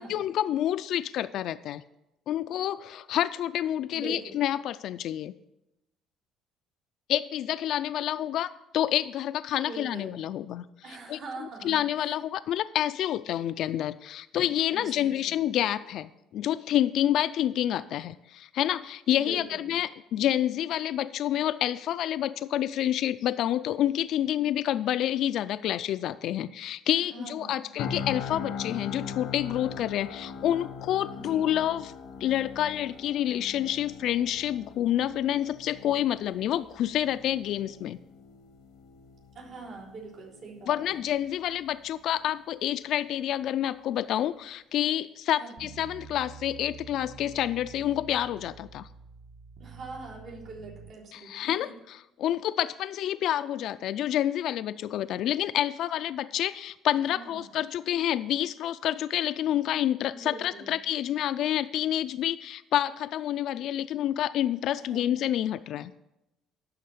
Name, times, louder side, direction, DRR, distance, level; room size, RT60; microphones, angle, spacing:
voice 1, 0.1-1.8 2.3-5.3 7.1-10.6 11.1-11.2 11.6-31.9 32.2-38.0 40.7-48.9 51.1-65.9, left 11 dB, 65° left, 12 dB, 0.3 m, -28 dB
voice 2, 3.9-4.5 9.6-10.2 10.8-12.1 14.7-15.5 19.1-19.8 26.9-27.6 31.1-31.7 39.3-41.1 45.4-45.7 49.6-51.7 57.0-57.6 60.1-60.7 64.8-65.3, right 3 dB, 75° right, -7 dB, 3.8 m, -44 dB
sound 1, 27.8-41.8 42.1-42.3, left 6 dB, 85° left, 0.8 m, -41 dB
sound 2, 45.6-50.9, right 7 dB, 45° right, 0.7 m, -48 dB
9.4 x 6.4 x 6.8 m, 0.92 s
cardioid pair, 115°, 0 cm